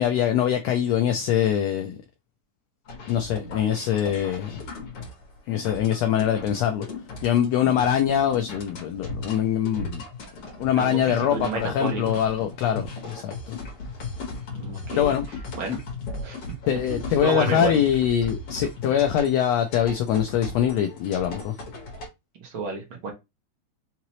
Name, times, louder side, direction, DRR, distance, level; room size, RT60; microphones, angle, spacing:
voice 1, 0.0-2.0 3.1-4.6 5.5-6.9 7.2-10.0 10.6-13.6 15.0-15.3 16.7-21.6, left 9 dB, 80° left, 1.6 m, -23 dB
sound 1, 2.9-22.1, left 3 dB, 55° left, 2.4 m, -37 dB
voice 2, 10.8-12.2 14.5-15.1 15.6-15.8 16.2-16.4 17.2-17.7 22.4-23.1, right 4 dB, 55° right, 1.8 m, -31 dB
5.6 x 2.9 x 3.0 m
omnidirectional pair, 3.5 m